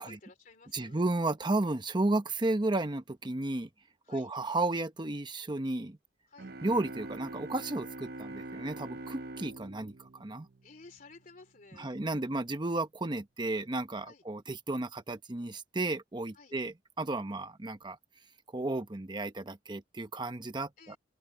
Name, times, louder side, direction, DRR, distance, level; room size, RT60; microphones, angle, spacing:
voice 1, 0.0-1.0 4.0-4.3 6.3-6.5 10.6-12.0 14.0-14.2 16.3-16.5 20.8-21.0, left 3 dB, 50° left, 3.1 m, -54 dB
voice 2, 0.7-3.7 4.1-6.0 6.6-10.5 11.8-18.0 18.5-21.0, right 2 dB, 25° right, 0.9 m, -33 dB
sound 1, 6.4-11.1, right 2 dB, 60° right, 0.8 m, -44 dB
open air
head